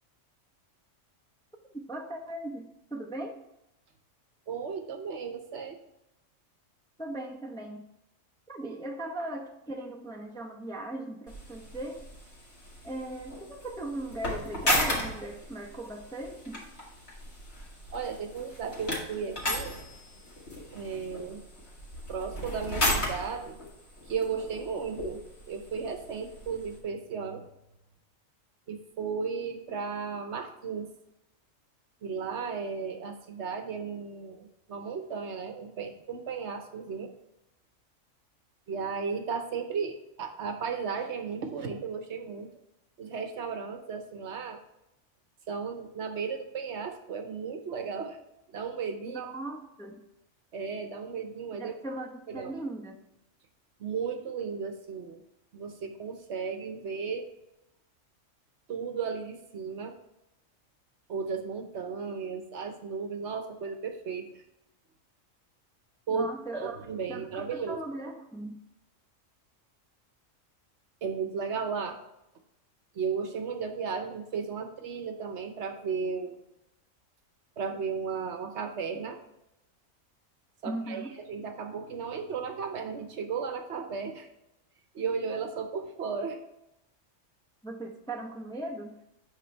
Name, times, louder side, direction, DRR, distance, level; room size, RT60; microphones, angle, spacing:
voice 1, 1.9-3.4 7.0-7.8 8.5-12.0 12.8-16.6 49.1-50.0 51.6-53.0 66.1-66.8 67.1-68.6 80.6-81.1 87.6-89.0, right 1 dB, 5° left, 1 dB, 0.6 m, -38 dB
voice 2, 4.5-5.8 17.9-19.8 20.7-21.4 22.1-23.6 24.1-25.2 25.5-27.4 28.7-30.9 32.0-37.1 38.7-42.5 43.0-44.6 45.5-48.2 48.5-49.2 50.5-51.7 52.3-52.5 53.8-55.2 55.5-57.3 58.7-59.9 61.1-64.4 66.1-66.3 66.6-67.8 71.0-72.0 72.9-76.4 77.6-79.2 80.6-84.3 84.9-86.4, right 5 dB, 60° right, 6 dB, 1.1 m, -35 dB
sound 1, 11.3-26.8, left 1 dB, 55° left, 2.5 m, -35 dB
8.0 x 5.9 x 3.3 m, 0.86 s
omnidirectional pair, 1.4 m